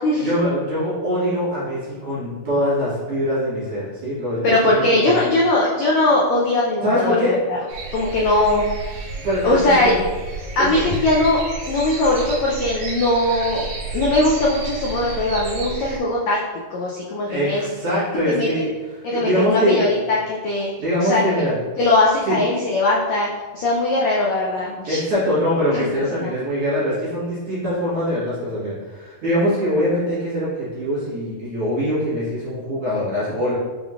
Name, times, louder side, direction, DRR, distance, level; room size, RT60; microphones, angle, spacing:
voice 1, 0.1-5.2 6.8-7.4 9.2-10.0 10.6-10.7 17.3-20.0 20.8-21.6 22.3-22.4 24.9-33.5, equal, 50° right, -10 dB, 2.3 m, -23 dB
voice 2, 4.4-7.1 7.5-7.6 7.9-8.7 9.4-10.0 10.6-16.4 16.7-17.6 18.3-18.5 19.0-20.7 21.0-21.2 21.8-23.3 23.5-25.0 25.7-25.9 26.2-26.3, left 2 dB, 85° left, -4 dB, 1.5 m, -20 dB
sound 1, 7.7-16.0, right 4 dB, 90° right, 2.5 m, -31 dB
6.3 x 3.6 x 2.4 m, 1.3 s
omnidirectional pair, 3.7 m